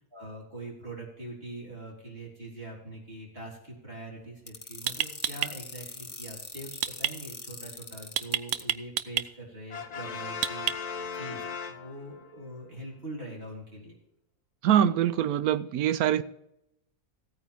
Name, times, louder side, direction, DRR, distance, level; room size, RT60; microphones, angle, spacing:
voice 1, 0.1-11.4 11.7-14.0, right 1 dB, 40° right, 4.0 m, -43 dB
sound 1, 4.2-4.4 4.9-5.5 6.8-7.1 8.2-9.3 10.4-11.0, right 11 dB, 65° right, 0.8 m, -28 dB
sound 2, 4.5-8.6, left 3 dB, 25° left, 1.4 m, -42 dB
Brass instrument, 9.7-12.4, left 6 dB, 60° left, 0.4 m, -37 dB
voice 2, 14.6-16.2, right 10 dB, 85° right, 1.1 m, -24 dB
16.0 x 9.1 x 3.5 m
omnidirectional pair, 1.5 m